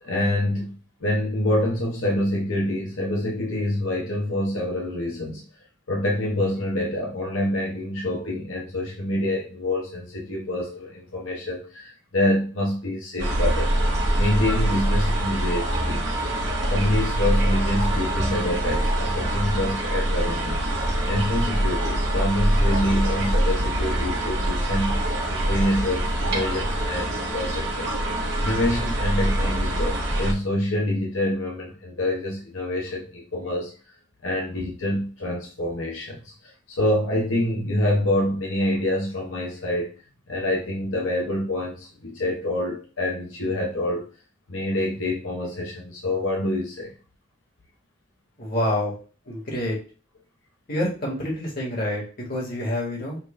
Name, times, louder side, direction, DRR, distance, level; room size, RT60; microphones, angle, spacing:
voice 1, 0.0-0.7 1.0-5.5 5.9-13.7 14.2-16.1 16.7-20.6 21.1-25.0 25.3-27.9 28.4-33.7 34.2-39.9 40.3-44.1 44.5-46.9, left 1 dB, 85° left, -2 dB, 1.0 m, -26 dB
sound 1, 13.2-30.3, right 1 dB, 60° right, 1.2 m, -24 dB
voice 2, 48.4-48.9 49.3-49.8 50.7-53.2, left 1 dB, 50° left, -3 dB, 1.7 m, -27 dB
6.1 x 2.5 x 3.3 m, 0.37 s
head